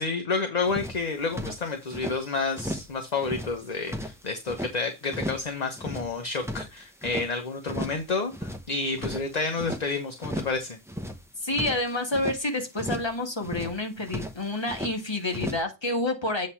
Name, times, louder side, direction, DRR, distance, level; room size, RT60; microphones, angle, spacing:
voice 1, 0.0-10.8, left 4 dB, 40° left, 0.9 m, -30 dB
sound 1, 0.6-2.2 2.5-2.9 3.2-4.7 5.1-5.5 5.7-7.3 7.6-8.0 8.3-9.8 10.2-10.6 10.9-12.4 12.7-13.2 13.4-14.9 15.3-15.6, equal, 5° right, 0.6 m, -35 dB
voice 2, 11.4-16.5, left 2 dB, 20° left, 1.5 m, -28 dB
8.0 x 3.2 x 5.6 m
omnidirectional pair, 1.2 m